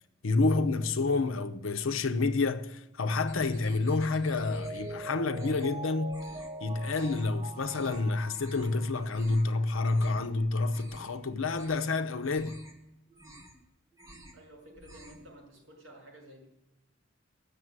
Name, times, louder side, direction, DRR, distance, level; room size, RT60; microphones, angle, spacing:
voice 1, 0.2-6.3 6.6-12.6, left 3 dB, 85° left, 0.8 m, -29 dB
sound 1, 3.3-4.9 5.2-5.8 6.1-6.5 6.9-7.3 7.6-8.0 8.3-8.7 9.0-9.5 9.8-10.2 10.6-11.2 11.5-11.9 12.2-12.7 13.1-13.6 13.9-14.4 14.7-15.3, right 1 dB, 15° right, 1.9 m, -52 dB
Mallet percussion, 4.3-9.8 10.2-10.3, right 2 dB, 30° right, 0.7 m, -43 dB
voice 2, 14.3-16.5, right 1 dB, 75° right, 5.1 m, -52 dB
12.0 x 6.9 x 9.4 m
head